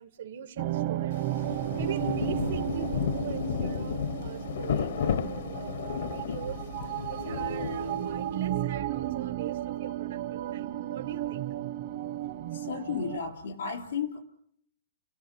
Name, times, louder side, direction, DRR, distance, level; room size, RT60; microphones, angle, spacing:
voice 1, 0.0-11.5, right 9 dB, 80° right, 4 dB, 1.8 m, -42 dB
sound 1, 0.6-13.2, right 12 dB, 45° right, 1.0 m, -34 dB
Rain, 1.1-8.4, left 8 dB, 70° left, 1.1 m, -33 dB
voice 2, 12.5-14.2, left 6 dB, 90° left, 6 dB, 4.2 m, -34 dB
29.5 x 18.0 x 8.7 m, 0.71 s
hypercardioid pair, 165°, 0 cm